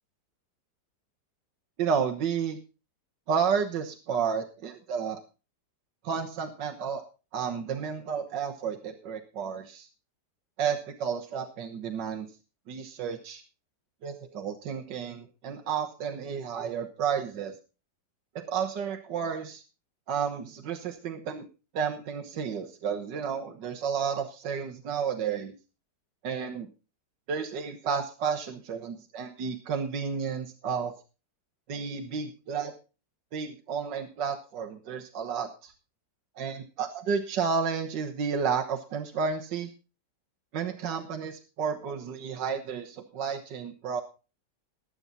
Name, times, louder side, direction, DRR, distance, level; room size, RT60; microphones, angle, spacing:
voice 1, 1.8-2.6 3.3-5.2 6.0-7.0 7.3-9.9 10.6-12.3 12.7-13.4 14.0-17.5 18.3-19.6 20.1-21.5 21.7-25.5 26.2-26.7 27.3-30.9 31.7-32.7 33.3-35.7 36.4-39.7 40.5-44.0, right 6 dB, 75° right, 3 dB, 1.8 m, -31 dB
20.0 x 7.5 x 4.0 m, 0.32 s
omnidirectional pair, 2.0 m